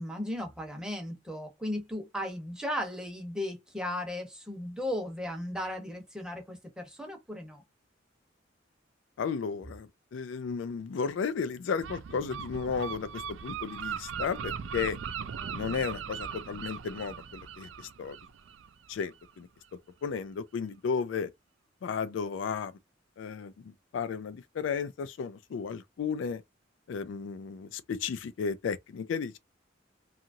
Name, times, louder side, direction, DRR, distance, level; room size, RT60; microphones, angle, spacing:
voice 1, 0.0-7.6, left 1 dB, 5° right, 0.8 m, -36 dB
voice 2, 9.2-15.0 15.5-18.2 18.9-19.5 20.0-21.3 21.8-22.7 23.2-26.4 26.9-29.4, left 6 dB, 75° left, 0.3 m, -34 dB
Gull seagull, 11.8-19.3, right 7 dB, 70° right, 0.4 m, -39 dB
2.8 x 2.4 x 2.6 m
head